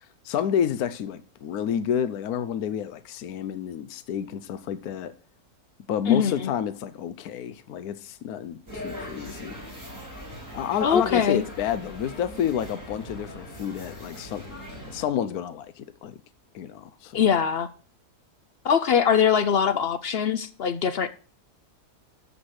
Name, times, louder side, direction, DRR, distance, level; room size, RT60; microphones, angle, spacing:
voice 1, 0.2-5.1 5.9-9.6 10.5-14.4 14.9-16.1 16.5-17.2, left 9 dB, 75° left, 1.2 m, -29 dB
voice 2, 6.1-6.5 10.8-11.5 17.1-17.7 18.6-21.1, left 7 dB, 60° left, 0.6 m, -22 dB
sound 1, 8.7-15.0, equal, 10° right, 5.3 m, -40 dB
14.0 x 5.2 x 6.4 m
omnidirectional pair, 1.6 m